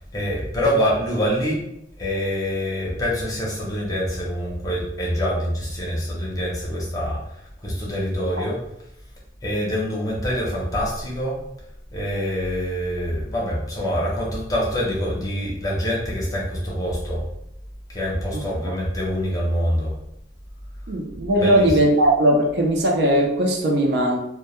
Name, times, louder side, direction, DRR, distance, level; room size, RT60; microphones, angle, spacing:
voice 1, 0.0-1.6 2.0-8.6 9.4-11.4 11.9-17.2 17.9-19.9 21.4-21.8, equal, 20° left, -4 dB, 0.6 m, -25 dB
voice 2, 20.9-24.2, right 1 dB, 60° right, 1 dB, 0.5 m, -19 dB
2.2 x 2.1 x 2.9 m, 0.82 s
head